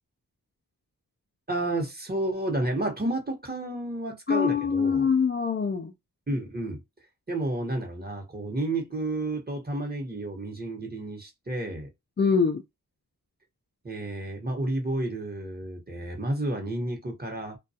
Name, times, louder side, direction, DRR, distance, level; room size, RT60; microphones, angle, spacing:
voice 1, 1.5-5.0 6.3-6.8 7.3-11.9 13.8-17.6, right 1 dB, 25° right, 1.0 m, -31 dB
voice 2, 4.3-5.9 12.2-12.6, left 5 dB, 30° left, 0.4 m, -24 dB
2.3 x 2.2 x 2.7 m
cardioid pair, 45°, 36 cm